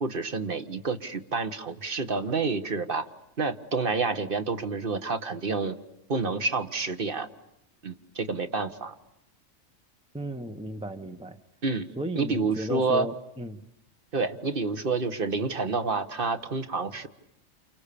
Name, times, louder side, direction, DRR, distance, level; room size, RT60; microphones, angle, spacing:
voice 1, 0.0-3.1 3.4-5.8 6.1-7.3 7.8-8.9 11.6-11.9 12.1-13.1 14.1-17.1, right 4 dB, 45° right, 10 dB, 1.6 m, -28 dB
voice 2, 10.1-11.4 12.0-13.6, equal, 5° right, 7 dB, 0.8 m, -35 dB
29.5 x 29.0 x 6.9 m, 0.82 s
omnidirectional pair, 1.4 m